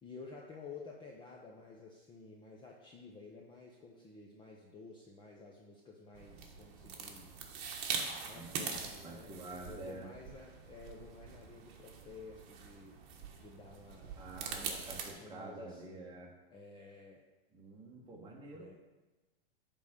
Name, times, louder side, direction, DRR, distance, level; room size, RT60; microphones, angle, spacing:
voice 1, 0.0-7.5 8.3-9.3 9.6-13.0 13.4-14.2 14.5-16.1 16.5-17.2 18.5-18.7, left 4 dB, 15° left, -1 dB, 0.7 m, -52 dB
sound 1, 6.1-15.1, right 6 dB, 40° right, 1.3 m, -43 dB
voice 2, 8.3-10.1 14.1-16.3 17.5-18.7, right 2 dB, 15° right, -2 dB, 1.5 m, -48 dB
9.4 x 3.8 x 6.7 m, 1.2 s
supercardioid pair, 140°, 30 cm